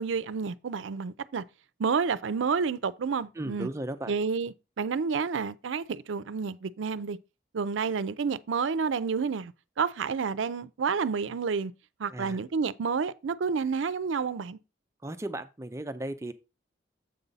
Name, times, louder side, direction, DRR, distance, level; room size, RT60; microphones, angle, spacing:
voice 1, 0.0-1.4 1.8-3.7 4.1-7.2 7.5-11.7 12.0-14.6, right 5 dB, 85° right, 0.5 m, -30 dB
voice 2, 3.4-4.1 12.1-12.4 15.0-16.3, right 1 dB, 15° right, 0.4 m, -36 dB
7.7 x 5.4 x 4.0 m
head